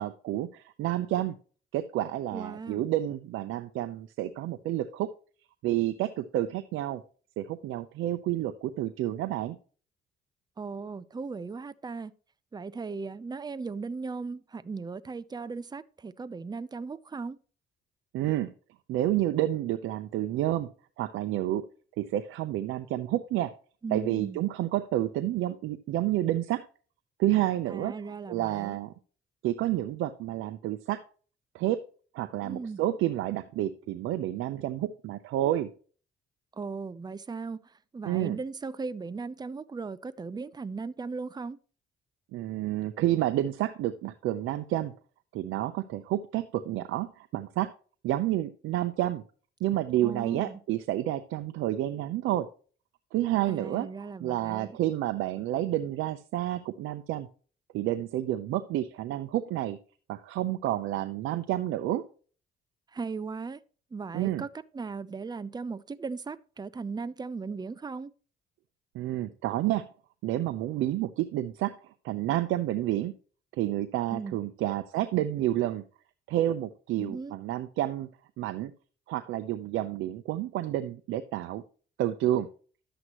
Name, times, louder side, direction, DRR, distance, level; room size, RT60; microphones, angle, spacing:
voice 1, 0.0-1.3 1.7-5.1 5.6-7.0 7.4-9.6 18.1-18.5 18.9-20.7 21.0-21.7 22.0-23.5 23.9-26.6 27.2-27.9 28.3-28.9 29.4-31.0 31.5-31.8 32.1-35.7 38.0-38.4 42.3-44.9 45.3-47.7 48.0-49.2 49.6-52.5 53.1-53.9 54.2-57.3 57.7-59.8 60.1-62.0 64.1-64.4 68.9-69.9 70.2-71.8 72.0-73.1 73.5-75.8 76.3-78.1 78.4-78.7 79.1-81.6 82.0-82.5, right 13 dB, 90° right, 0.7 m, -29 dB
voice 2, 2.3-2.8 10.6-12.1 12.5-17.4 23.8-24.4 27.7-28.8 32.4-32.8 36.5-41.6 50.0-50.6 53.5-54.8 62.9-63.6 63.9-64.5 64.7-68.1 74.1-74.4 77.0-77.4, right 4 dB, 20° right, 0.6 m, -37 dB
11.0 x 7.9 x 3.0 m
cardioid pair, 90°, 20 cm